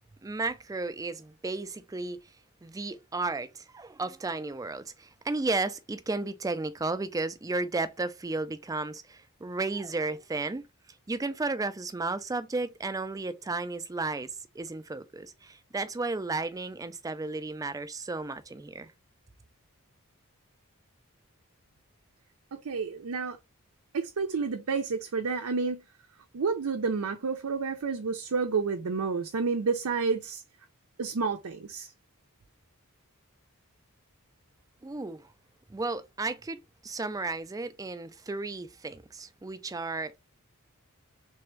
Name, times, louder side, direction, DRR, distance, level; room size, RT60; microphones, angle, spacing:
voice 1, 0.2-2.2 2.6-10.7 11.1-18.9 34.8-35.3 35.7-36.6 36.8-40.2, right 3 dB, 15° right, 0.4 m, -33 dB
voice 2, 22.5-23.4 23.9-25.8 26.3-30.4 31.0-31.9, right 4 dB, 80° right, 0.6 m, -30 dB
3.4 x 3.4 x 3.1 m
head